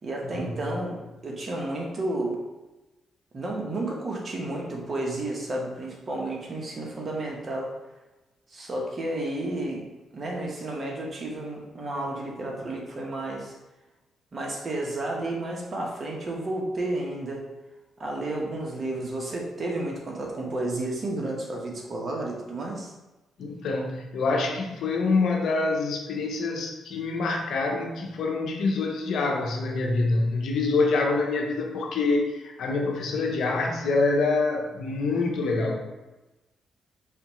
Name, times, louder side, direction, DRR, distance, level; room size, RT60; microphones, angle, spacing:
voice 1, 0.0-2.4 3.3-7.7 8.5-13.6 14.3-17.5 18.0-22.9 33.2-33.4, right 2 dB, 40° right, -1 dB, 1.1 m, -32 dB
voice 2, 23.4-35.8, left 3 dB, 75° left, 1 dB, 0.8 m, -26 dB
4.9 x 3.5 x 3.1 m, 1.1 s
cardioid pair, 95°, 0 cm